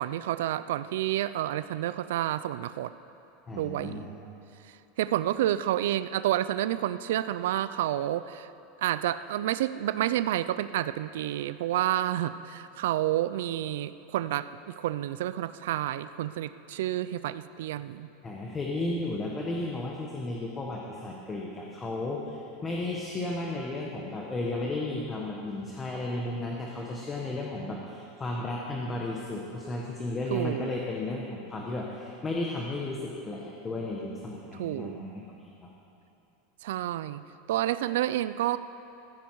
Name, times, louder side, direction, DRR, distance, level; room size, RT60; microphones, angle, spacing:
voice 1, 0.0-2.9 3.5-4.1 4.6-8.5 8.8-18.1 30.3-30.7 34.6-35.0 36.6-37.2 37.5-38.6, right 13 dB, 75° right, 14 dB, 0.4 m, -29 dB
voice 2, 3.5-4.1 18.2-35.2 35.6-35.7, left 2 dB, 15° left, -2 dB, 1.1 m, -34 dB
15.0 x 14.5 x 4.7 m, 2.9 s
supercardioid pair, 170°, 0 cm